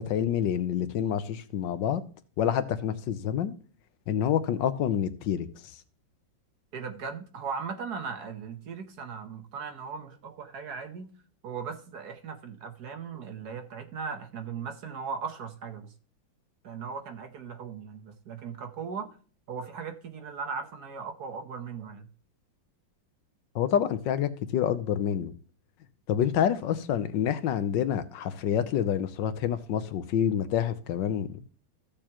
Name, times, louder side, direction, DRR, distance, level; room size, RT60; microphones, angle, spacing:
voice 1, 0.0-2.0 2.4-3.5 4.1-5.5 23.5-25.3 26.1-31.4, left 9 dB, 70° left, 1.4 m, -27 dB
voice 2, 6.7-11.1 11.4-15.9 16.6-19.1 19.5-22.1, right 5 dB, 60° right, 1.4 m, -38 dB
15.0 x 6.8 x 2.9 m
omnidirectional pair, 2.2 m